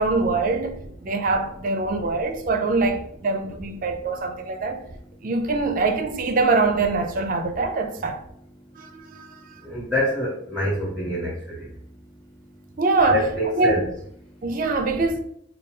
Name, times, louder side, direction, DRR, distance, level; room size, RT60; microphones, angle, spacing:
voice 1, 0.0-4.8 5.2-8.2 8.8-9.5 12.8-13.2 13.6-13.8 14.4-15.2, right 3 dB, 40° right, 0.4 m, -23 dB
voice 2, 9.7-11.3 13.1-13.8, left 1 dB, ahead, 1.0 m, -25 dB
5.1 x 2.3 x 3.7 m
head